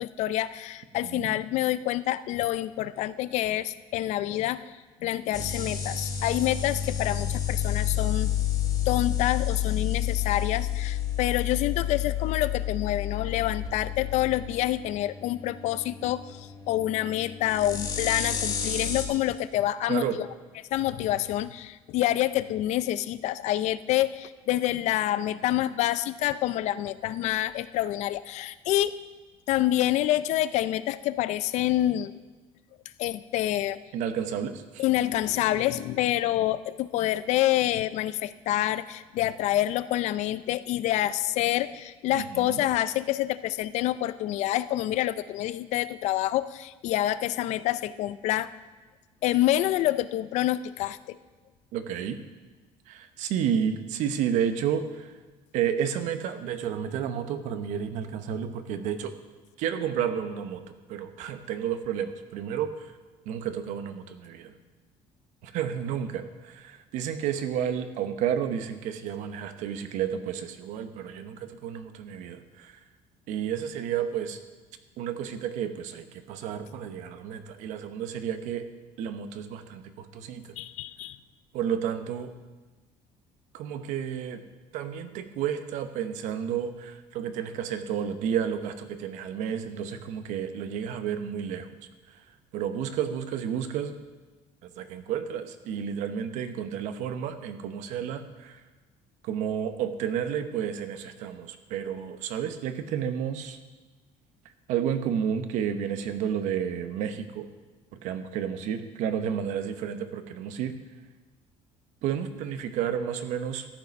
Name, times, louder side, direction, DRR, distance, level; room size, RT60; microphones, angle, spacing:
voice 1, 0.0-4.7 5.0-8.3 8.9-20.3 20.7-29.0 29.5-32.1 33.0-33.8 34.8-48.5 49.2-51.2 80.6-81.2, left 14 dB, 65° left, 15 dB, 0.5 m, -27 dB
sound 1, 5.3-19.1, left 10 dB, 30° left, 2.5 m, -30 dB
voice 2, 33.9-34.8 42.1-42.6 51.7-52.2 52.9-55.1 55.5-59.2 59.6-60.6 60.9-62.9 63.3-64.5 65.4-72.8 73.3-74.4 75.0-78.7 79.0-80.5 81.5-82.3 83.5-84.4 84.7-91.7 92.1-92.2 92.5-94.0 94.6-98.6 99.2-103.6 104.7-107.5 108.0-110.7 112.0-113.7, right 8 dB, 70° right, 9 dB, 1.0 m, -31 dB
13.5 x 8.5 x 5.3 m, 1.2 s
cardioid pair, 135°, 13 cm